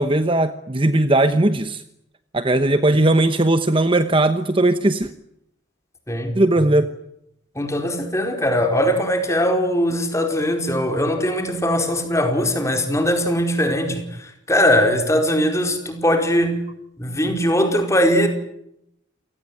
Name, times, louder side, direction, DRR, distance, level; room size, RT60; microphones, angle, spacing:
voice 1, 0.0-1.8 2.3-5.1 6.3-6.9, right 1 dB, 25° right, 1.0 m, -18 dB
voice 2, 6.1-6.7 7.5-16.6 17.0-18.3, equal, 15° left, 4.7 m, -20 dB
28.5 x 19.0 x 9.5 m
head